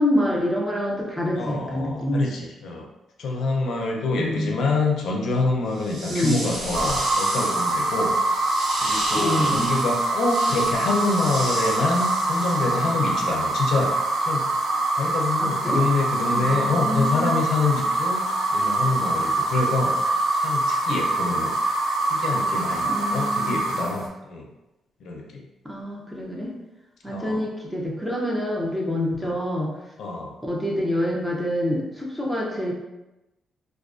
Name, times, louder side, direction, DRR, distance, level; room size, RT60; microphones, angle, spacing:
voice 1, 0.0-2.2 4.1-4.7 6.1-6.4 9.1-9.6 15.4-15.8 16.3-17.3 22.8-23.5 25.6-26.5 27.0-29.7 30.5-32.7, left 1 dB, 5° right, -3 dB, 0.4 m, -26 dB
voice 2, 1.3-2.9 3.2-8.2 8.8-14.0 14.3-14.5 14.9-19.9 20.3-21.6 22.1-24.5 25.0-25.4 27.1-27.4 29.2-29.4 30.0-30.4, left 3 dB, 65° left, 0 dB, 0.4 m, -26 dB
sound 1, 5.7-13.0, right 1 dB, 90° right, 0.9 m, -33 dB
sound 2, 6.7-24.1, right 2 dB, 70° right, 0.4 m, -24 dB
2.3 x 2.3 x 2.4 m, 0.99 s
cardioid pair, 135°, 0 cm